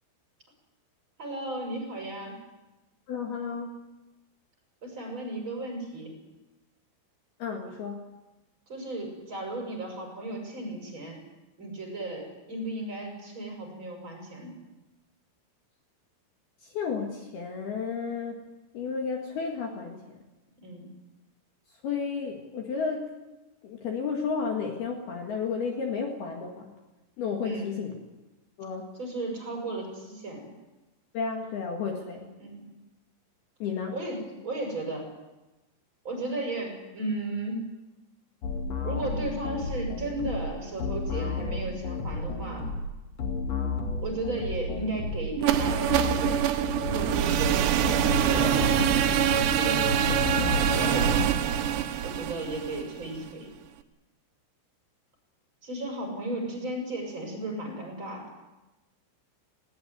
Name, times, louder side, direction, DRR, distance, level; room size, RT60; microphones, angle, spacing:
voice 1, 1.2-2.4 4.8-6.2 8.7-11.2 11.6-14.5 20.6-20.9 27.4-27.7 29.0-30.4 32.4-32.6 33.9-35.1 36.0-37.7 38.8-42.7 44.0-46.5 46.8-50.7 52.0-53.5 55.6-58.2, right 2 dB, 25° right, 1 dB, 6.6 m, -35 dB
voice 2, 3.1-3.7 7.4-8.1 16.6-18.4 18.7-20.0 21.8-23.1 23.6-26.7 27.2-28.0 28.6-28.9 31.1-32.3 33.6-34.0 55.8-56.2, left 5 dB, 60° left, 2 dB, 3.5 m, -32 dB
sound 1, 38.4-51.3, left 3 dB, 45° left, 2.6 m, -32 dB
sound 2, 45.4-53.3, right 10 dB, 75° right, 3.0 m, -25 dB
19.5 x 18.0 x 9.5 m, 1.1 s
omnidirectional pair, 5.7 m